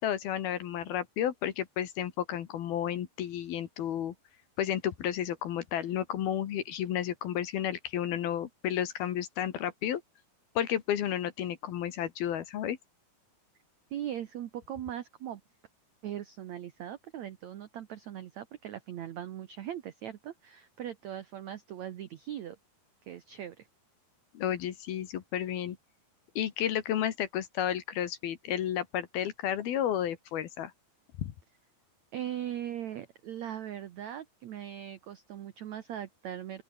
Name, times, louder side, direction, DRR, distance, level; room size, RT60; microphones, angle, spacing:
voice 1, 0.0-4.1 4.6-10.0 10.6-12.8 24.3-25.8 26.4-30.7 31.2-31.3, left 10 dB, 65° left, 3.3 m, -32 dB
voice 2, 13.9-15.4 16.0-22.6 23.0-23.7 32.1-36.6, right 11 dB, 85° right, 1.6 m, -40 dB
open air
omnidirectional pair, 4.9 m